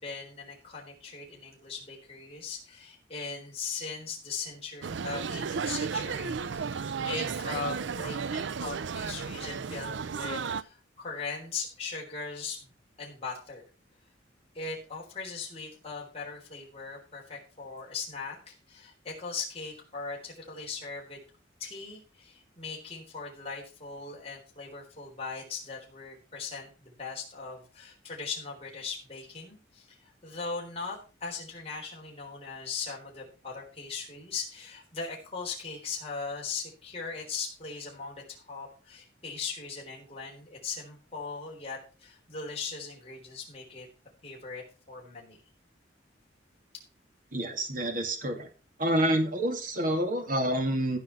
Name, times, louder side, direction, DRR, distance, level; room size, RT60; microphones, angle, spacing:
voice 1, 0.0-12.6 13.0-13.7 14.5-21.2 21.6-43.9 44.2-45.4, left 5 dB, 30° left, -2 dB, 3.8 m, -39 dB
sound 1, 4.8-10.6, right 5 dB, 70° right, 0.5 m, -33 dB
voice 2, 47.3-48.5 48.8-51.0, right 1 dB, 45° right, 5 dB, 2.3 m, -28 dB
15.0 x 5.5 x 5.8 m, 0.35 s
head